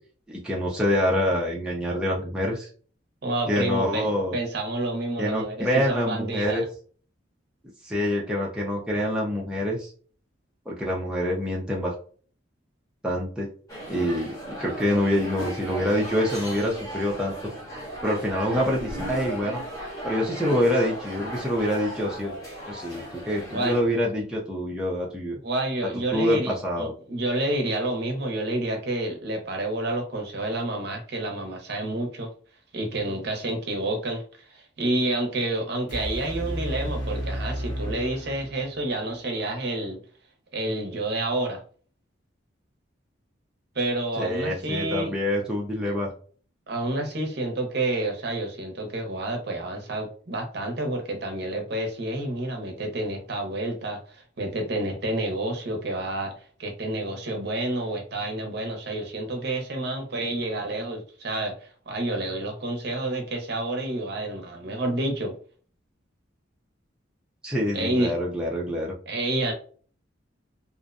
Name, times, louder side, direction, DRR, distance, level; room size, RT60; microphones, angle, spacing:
voice 1, 0.3-2.7 3.5-4.4 5.2-6.6 7.8-9.9 10.7-11.9 13.0-13.5 13.9-17.3 18.0-19.6 20.0-22.3 22.7-25.4 26.1-26.9 44.2-46.1 67.4-68.9, equal, 5° right, -4 dB, 0.4 m, -26 dB
voice 2, 3.2-4.1 4.3-6.6 23.5-23.7 25.4-32.3 32.7-34.2 34.5-40.0 40.5-41.6 43.7-45.1 46.7-56.3 56.6-65.3 67.7-68.1 69.1-69.5, right 1 dB, 55° right, 3 dB, 0.7 m, -29 dB
sound 1, 13.7-23.8, right 1 dB, 15° left, 0.9 m, -36 dB
sound 2, 35.9-38.9, equal, 65° left, 0.7 m, -32 dB
2.5 x 2.0 x 2.4 m, 0.44 s
head